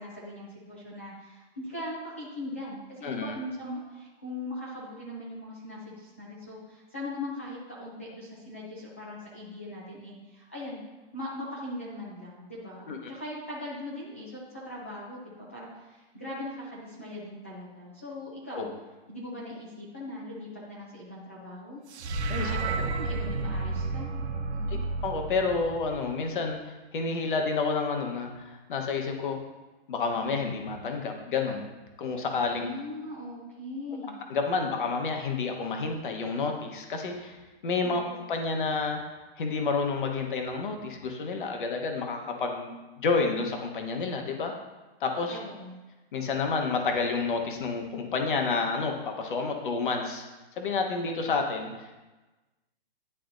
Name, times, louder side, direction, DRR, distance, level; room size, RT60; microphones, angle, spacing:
voice 1, 0.0-10.8 11.1-18.7 19.1-21.8 22.4-24.1 24.5-24.8 32.5-34.2 37.8-38.1 45.3-45.8, left 1 dB, 15° left, -7 dB, 0.4 m, -40 dB
voice 2, 3.0-3.3 12.9-13.0 18.6-18.7 22.3-22.6 24.7-29.4 29.9-31.7 32.0-32.7 34.3-37.4 37.6-38.0 38.3-39.0 39.4-44.5 45.0-45.4 46.1-50.2 50.6-51.9, left 4 dB, 50° left, 3 dB, 1.2 m, -29 dB
sound 1, 21.9-26.3, right 3 dB, 85° right, 0.9 m, -32 dB
11.0 x 4.2 x 2.6 m, 1.1 s
hypercardioid pair, 180°, 32 cm